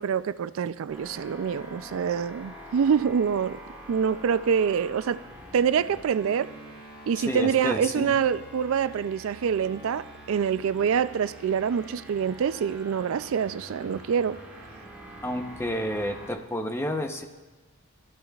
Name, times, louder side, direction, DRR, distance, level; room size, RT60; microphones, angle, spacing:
voice 1, 0.0-3.6 3.9-5.2 5.5-6.5 7.1-14.4, right 7 dB, 60° right, 0.3 m, -26 dB
sound 1, 0.9-16.3, right 1 dB, 5° right, 3.5 m, -45 dB
voice 2, 7.2-8.1 15.2-17.2, left 1 dB, 10° left, 0.7 m, -30 dB
17.0 x 12.5 x 2.4 m
head